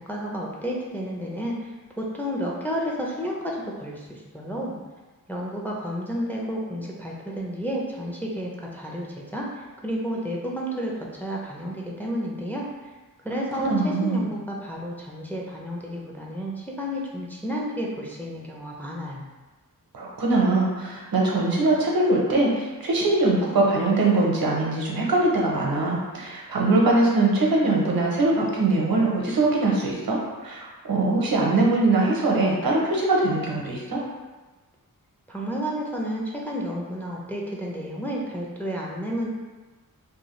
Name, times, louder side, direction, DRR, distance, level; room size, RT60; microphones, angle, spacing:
voice 1, 0.1-4.8 5.3-12.7 13.2-19.2 35.3-39.3, equal, 5° left, -3 dB, 0.4 m, -31 dB
voice 2, 13.5-14.3 19.9-34.0, right 2 dB, 80° right, -2 dB, 0.7 m, -22 dB
2.6 x 2.3 x 3.0 m, 1.2 s
wide cardioid pair, 80°, 35 cm